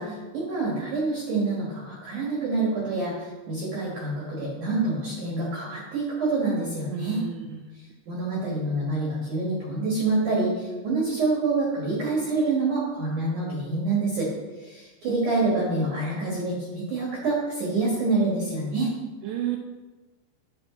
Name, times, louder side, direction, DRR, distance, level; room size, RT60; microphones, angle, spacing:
voice 1, 0.0-7.2 8.1-14.3 14.6-18.9, right 3 dB, 55° right, -5 dB, 2.6 m, -27 dB
voice 2, 6.9-7.4 19.2-19.6, right 11 dB, 80° right, 2 dB, 2.9 m, -30 dB
9.8 x 8.7 x 3.8 m, 1.2 s
omnidirectional pair, 5.5 m